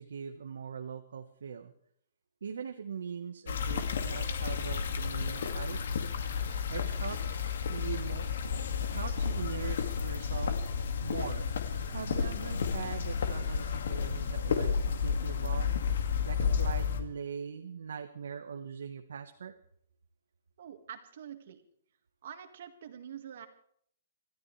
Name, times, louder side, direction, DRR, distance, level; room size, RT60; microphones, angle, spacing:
voice 1, 0.0-1.7 2.4-6.1 6.7-8.3 8.8-11.4 11.9-15.8 16.2-19.5, right 6 dB, 90° right, 6 dB, 1.3 m, -41 dB
sound 1, 3.5-17.0, left 6 dB, 65° left, 2.1 m, -32 dB
voice 2, 20.6-21.6 22.2-23.5, right 9 dB, 50° right, 7 dB, 1.9 m, -46 dB
27.0 x 13.5 x 3.3 m, 0.64 s
hypercardioid pair, 175°, 0 cm